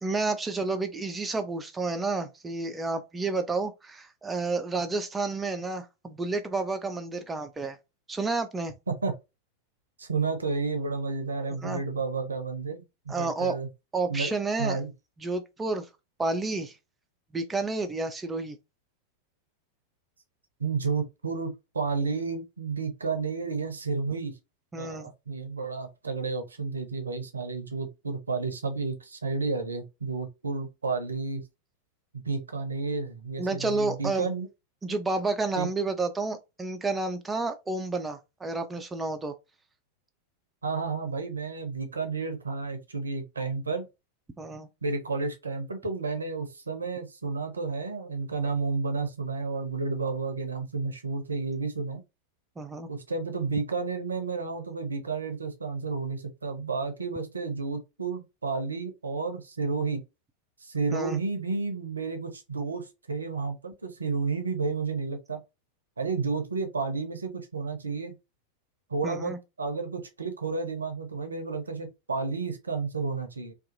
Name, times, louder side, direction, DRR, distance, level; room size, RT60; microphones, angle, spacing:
voice 1, 0.0-7.8 8.1-8.7 11.6-11.8 13.1-13.6 13.9-14.8 15.2-15.9 16.2-16.8 17.3-18.6 24.7-25.1 33.4-34.3 34.8-39.3 44.4-44.7 52.6-52.9 60.9-61.2 69.0-69.4, right 3 dB, 15° right, 0.3 m, -30 dB
voice 2, 10.0-13.7 14.1-14.3 14.6-14.9 20.6-24.3 24.8-31.4 32.2-34.5 35.6-35.7 40.6-43.9 44.8-52.0 52.9-60.0 60.6-65.4 66.0-68.1 68.9-73.5, right 4 dB, 75° right, 0.5 m, -31 dB
2.6 x 2.3 x 2.5 m
figure-of-eight pair, 90°, 0 cm